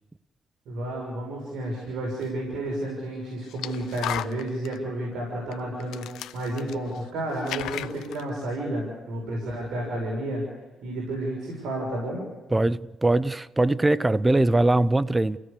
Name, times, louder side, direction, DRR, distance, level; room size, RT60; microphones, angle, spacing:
voice 1, 0.6-10.4 10.8-12.2, right 1 dB, 80° right, 6.6 m, -31 dB
sound 1, 2.2-2.3 3.4-4.8 5.5-5.6 5.8-7.1 7.3-8.2, left 13 dB, 85° left, 0.7 m, -35 dB
voice 2, 12.5-15.4, right 2 dB, 15° right, 0.7 m, -21 dB
29.5 x 17.0 x 6.9 m
cardioid pair, 90°, 0 cm